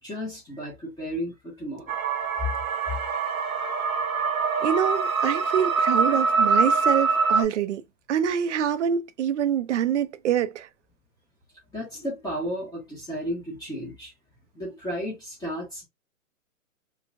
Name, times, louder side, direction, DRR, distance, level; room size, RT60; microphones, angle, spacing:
voice 1, 0.0-1.9 11.7-14.1 14.5-15.9, equal, 10° left, 1.1 m, -33 dB
sound 1, 1.9-7.4, right 5 dB, 85° right, 1.3 m, -24 dB
voice 2, 4.6-7.8 8.1-10.7, right 9 dB, 60° right, 0.7 m, -25 dB
4.6 x 2.4 x 2.3 m
hypercardioid pair, 135°, 41 cm